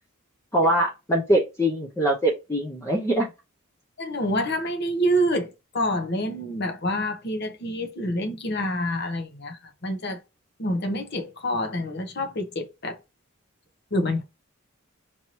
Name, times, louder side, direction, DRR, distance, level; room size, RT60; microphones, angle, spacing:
voice 1, 0.5-3.3, right 1 dB, 15° left, 0.7 m, -23 dB
voice 2, 4.0-5.5 5.7-10.2 10.6-13.0 13.9-14.2, equal, 55° left, 1.0 m, -27 dB
4.6 x 2.8 x 3.0 m
head